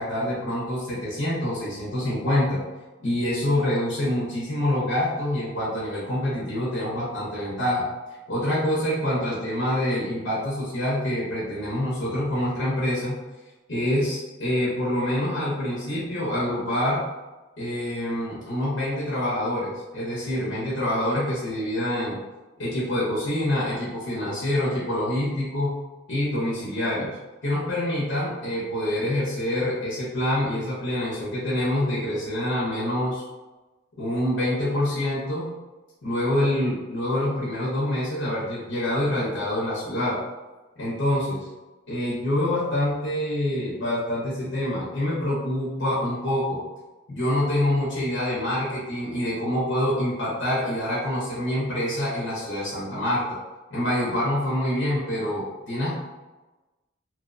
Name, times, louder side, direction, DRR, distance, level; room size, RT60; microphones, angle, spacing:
voice 1, 0.0-2.6 3.0-7.9 8.3-13.2 13.7-17.0 17.6-22.2 22.6-25.8 26.1-27.1 27.4-33.2 34.0-35.5 36.0-40.2 40.8-41.5 41.9-46.6 47.1-53.2 53.7-55.9, left 1 dB, 75° left, -6 dB, 0.7 m, -26 dB
2.8 x 2.0 x 2.5 m, 1.1 s
head